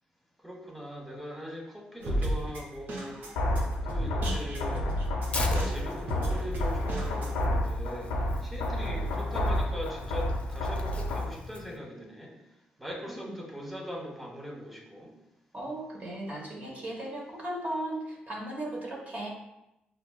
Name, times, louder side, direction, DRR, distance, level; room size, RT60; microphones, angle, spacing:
voice 1, 0.4-3.2 3.8-4.9 5.3-8.1 8.4-12.3 12.8-15.1, equal, 5° right, -1 dB, 1.1 m, -40 dB
sound 1, 2.0-7.3, equal, 65° right, 0.8 m, -33 dB
sound 2, 3.4-11.4, left 1 dB, 90° left, 0.5 m, -30 dB
Tearing, 5.3-11.8, left 2 dB, 35° left, 0.6 m, -42 dB
voice 2, 15.5-19.3, right 1 dB, 45° right, -2 dB, 1.0 m, -36 dB
5.5 x 2.0 x 2.3 m, 0.87 s
hypercardioid pair, 50°, 4 cm